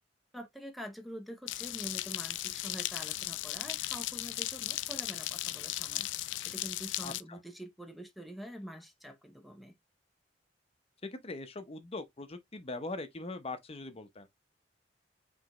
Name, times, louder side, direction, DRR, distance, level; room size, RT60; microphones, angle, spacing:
voice 1, 0.3-9.8, equal, ahead, 0.7 m, -46 dB
sound 1, 1.5-7.2, left 15 dB, 85° left, 0.4 m, -36 dB
voice 2, 7.0-7.4 11.0-14.3, left 2 dB, 35° left, 0.7 m, -41 dB
5.0 x 3.5 x 2.9 m
head